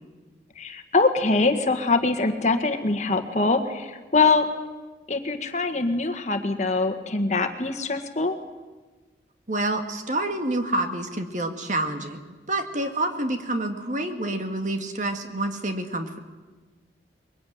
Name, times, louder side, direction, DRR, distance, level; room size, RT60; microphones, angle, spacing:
voice 1, 0.6-4.5 5.1-8.4, left 3 dB, 40° left, 7 dB, 1.6 m, -23 dB
voice 2, 9.5-12.2 12.5-16.2, right 1 dB, 45° right, 6 dB, 2.0 m, -28 dB
23.0 x 22.0 x 9.4 m, 1.3 s
head